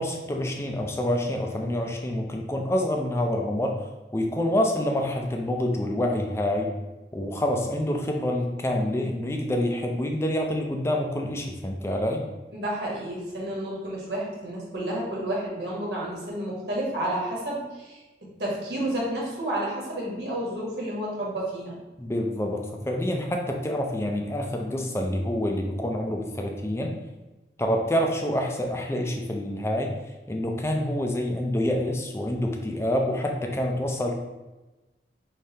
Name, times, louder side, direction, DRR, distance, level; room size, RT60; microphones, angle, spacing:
voice 1, 0.0-3.7 4.1-6.7 7.1-12.2 22.0-27.0 27.6-29.9 30.3-34.2, left 1 dB, 15° left, 2 dB, 0.4 m, -27 dB
voice 2, 12.5-21.8, right 1 dB, 75° right, -4 dB, 1.3 m, -31 dB
4.8 x 3.3 x 2.8 m, 1.1 s
head